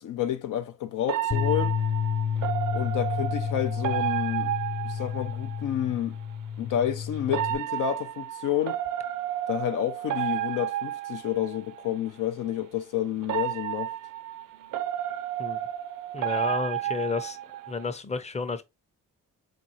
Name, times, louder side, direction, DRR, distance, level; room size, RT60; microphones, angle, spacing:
voice 1, 0.0-1.7 2.7-4.5 4.8-6.2 6.6-8.8 9.5-13.9, left 11 dB, 65° left, 0.5 m, -30 dB
sound 1, 1.1-5.7 7.3-11.9 13.2-17.9, right 12 dB, 65° right, 0.5 m, -32 dB
Bass guitar, 1.3-7.6, left 7 dB, 45° left, 0.8 m, -30 dB
voice 2, 16.1-17.4 17.7-18.6, left 4 dB, 20° left, 0.7 m, -31 dB
3.8 x 2.6 x 2.9 m
supercardioid pair, 50°, 34 cm